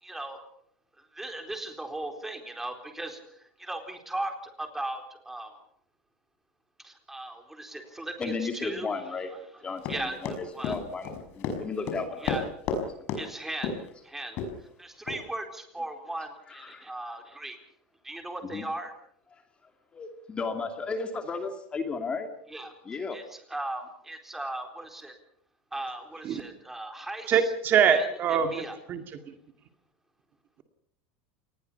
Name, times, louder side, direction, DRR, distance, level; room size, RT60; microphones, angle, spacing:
voice 1, 0.0-0.5 1.1-3.2 3.6-5.6 6.8-8.9 9.3-9.4 9.9-10.8 12.2-12.5 13.2-14.4 14.8-17.6 18.0-18.9 22.5-22.7 23.1-25.1 25.7-27.5 27.8-28.8, right 1 dB, 5° right, 4 dB, 4.1 m, -37 dB
voice 2, 8.2-9.3 9.6-12.3 12.7-12.8 16.5-16.9 18.5-18.6 19.9-22.3 22.9-23.2, left 4 dB, 20° left, 6 dB, 2.4 m, -34 dB
Run, 9.8-12.8 13.1-13.2 13.6-13.9 14.4-14.5 15.1-15.2, left 5 dB, 45° left, 5.8 m, -31 dB
voice 3, 27.3-28.5 28.9-29.0, right 7 dB, 35° right, 6 dB, 2.2 m, -23 dB
27.5 x 20.5 x 5.8 m, 0.67 s
supercardioid pair, 145°, 6 cm